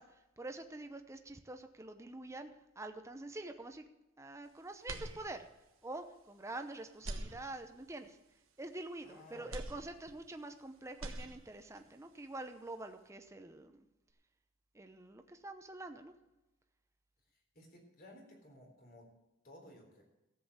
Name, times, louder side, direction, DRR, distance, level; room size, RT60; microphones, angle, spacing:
voice 1, 0.0-3.8 4.2-5.5 5.8-8.2 8.6-13.9 14.7-16.1, right 2 dB, 15° right, 7 dB, 0.7 m, -46 dB
sound 1, 4.8-5.7 6.2-6.3 6.9-8.0 9.5-10.6 10.9-11.8, right 2 dB, 85° right, 1.4 m, -45 dB
voice 2, 9.0-9.5 17.5-19.1 19.4-20.0, left 1 dB, 45° left, 1 dB, 3.8 m, -57 dB
13.5 x 7.7 x 6.7 m, 0.99 s
head